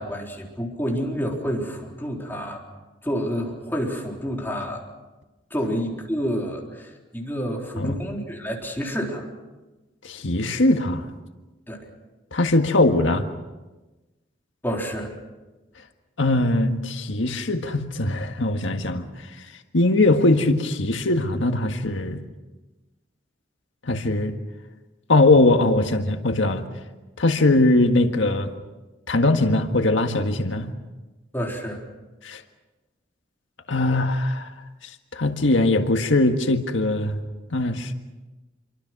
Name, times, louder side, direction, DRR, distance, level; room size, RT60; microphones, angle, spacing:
voice 1, 0.0-2.6 3.0-4.8 5.5-9.3 11.7-11.9 14.6-15.2 31.3-31.9, equal, 10° left, -1 dB, 4.0 m, -29 dB
voice 2, 10.0-11.0 12.3-13.3 16.2-19.0 19.7-22.2 23.8-24.4 25.1-26.7 27.2-28.5 29.1-30.7 32.2-32.4 33.7-34.5 34.8-37.2 37.5-37.9, left 2 dB, 80° left, 6 dB, 1.7 m, -21 dB
27.5 x 24.0 x 6.2 m, 1.1 s
head